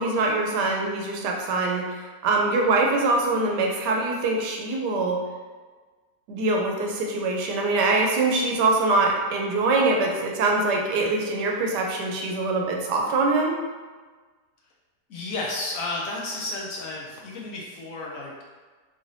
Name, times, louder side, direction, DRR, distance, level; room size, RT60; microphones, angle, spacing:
voice 1, 0.0-5.2 6.3-13.6, right 3 dB, 85° right, 0 dB, 1.2 m, -23 dB
voice 2, 15.1-18.4, left 2 dB, 65° left, -3 dB, 0.9 m, -32 dB
3.7 x 2.6 x 3.2 m, 1.4 s
omnidirectional pair, 1.8 m